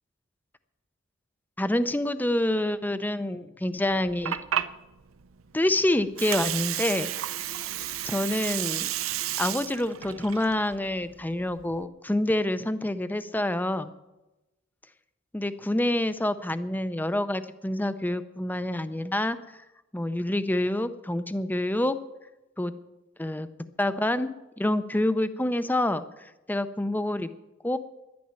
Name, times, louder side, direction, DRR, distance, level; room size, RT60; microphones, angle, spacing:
voice 1, 1.6-4.4 5.5-7.1 8.0-8.9 9.4-13.9 15.3-19.4 19.9-22.0 22.6-22.7 23.2-23.5 23.8-27.3 27.6-27.8, left 1 dB, 10° left, 12 dB, 0.5 m, -27 dB
Water, 3.9-11.8, right 11 dB, 75° right, 0.6 m, -33 dB
11.5 x 9.5 x 9.0 m, 1.0 s
head